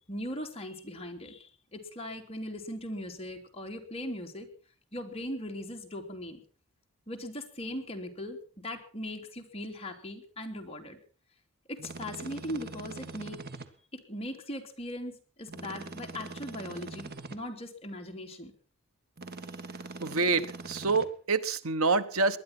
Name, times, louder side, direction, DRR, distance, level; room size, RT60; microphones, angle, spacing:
voice 1, 0.1-4.5 4.9-6.4 7.1-8.4 8.6-11.0 11.7-13.4 13.9-18.5, left 1 dB, 30° left, 2 dB, 3.2 m, -39 dB
sound 1, 11.8-13.7 15.5-17.4 19.2-21.1, right 3 dB, 50° right, 1.6 m, -42 dB
voice 2, 20.0-22.4, right 4 dB, 90° right, 12 dB, 1.2 m, -27 dB
20.0 x 11.5 x 6.0 m, 0.41 s
head